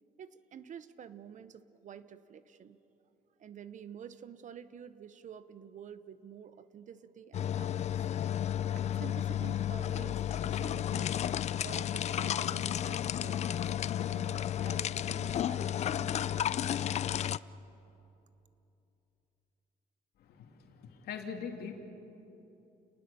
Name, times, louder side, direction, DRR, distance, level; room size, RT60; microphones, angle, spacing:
voice 1, 0.2-2.8 3.4-8.1 8.8-11.1 11.6-16.5, right 8 dB, 50° right, 13 dB, 1.0 m, -49 dB
sound 1, 7.3-17.4, left 10 dB, 40° left, 0.4 m, -32 dB
voice 2, 20.2-21.8, left 6 dB, 70° left, 3 dB, 2.7 m, -42 dB
29.5 x 19.5 x 6.9 m, 3.0 s
cardioid pair, 110°, 17 cm